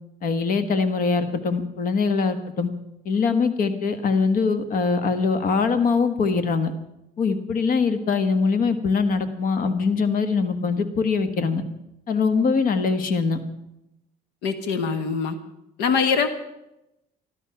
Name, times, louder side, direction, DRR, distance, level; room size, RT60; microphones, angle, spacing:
voice 1, 0.2-2.7 3.0-6.7 7.2-11.6 12.1-13.4, left 4 dB, 55° left, 10 dB, 1.4 m, -22 dB
voice 2, 14.4-15.4 15.8-16.3, left 5 dB, 90° left, 10 dB, 1.3 m, -23 dB
13.5 x 13.5 x 5.7 m, 0.87 s
cardioid pair, 110°, 17 cm